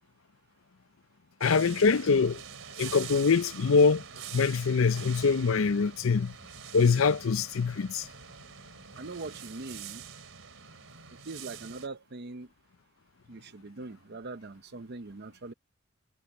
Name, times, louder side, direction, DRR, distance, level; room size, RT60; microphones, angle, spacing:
voice 1, 1.4-2.4 2.8-4.0 4.3-6.3 6.7-8.1, left 5 dB, 70° left, 0.5 m, -24 dB
sound 1, 1.4-11.9, right 8 dB, 70° right, 4.0 m, -45 dB
voice 2, 9.0-10.0 11.3-12.5 13.3-15.5, right 3 dB, 50° right, 0.8 m, -41 dB
head